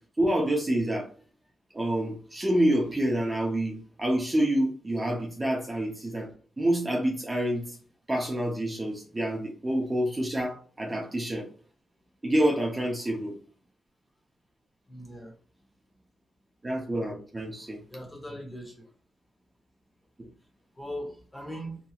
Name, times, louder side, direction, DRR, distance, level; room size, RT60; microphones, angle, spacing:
voice 1, 0.2-1.1 1.7-6.3 6.6-7.6 8.1-11.5 12.2-13.3 16.6-17.8 20.2-20.3, right 1 dB, 20° right, -1 dB, 0.7 m, -27 dB
voice 2, 14.9-15.3 17.9-18.9 20.7-21.8, equal, 15° left, 2 dB, 1.0 m, -39 dB
2.9 x 2.6 x 2.4 m, 0.43 s
cardioid pair, 80°, 0 cm